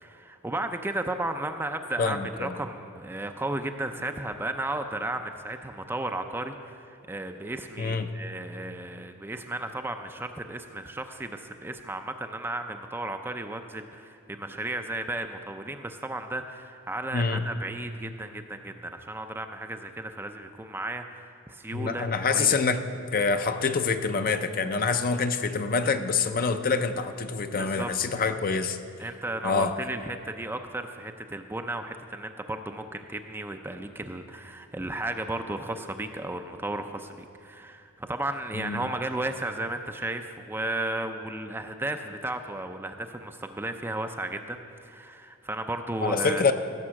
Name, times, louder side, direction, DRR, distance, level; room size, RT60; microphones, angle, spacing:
voice 1, 0.0-22.6 27.6-27.9 29.0-46.5, right 2 dB, 10° right, 6 dB, 0.4 m, -34 dB
voice 2, 2.0-2.6 7.8-8.1 17.1-17.4 21.7-22.8 23.1-28.8 29.4-29.7 38.5-38.8 46.0-46.5, left 5 dB, 40° left, 8 dB, 0.6 m, -26 dB
16.0 x 6.1 x 7.5 m, 2.4 s
head